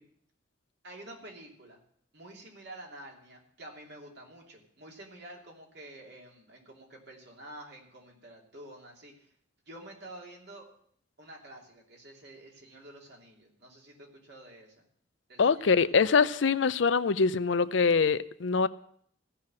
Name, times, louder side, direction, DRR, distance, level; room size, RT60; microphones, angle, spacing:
voice 1, 0.8-1.8 2.1-9.3 9.7-10.7 11.2-14.7 15.3-15.9, right 1 dB, 60° right, 2.9 m, -49 dB
voice 2, 15.4-18.7, left 5 dB, 70° left, 0.5 m, -24 dB
15.0 x 5.8 x 8.8 m
head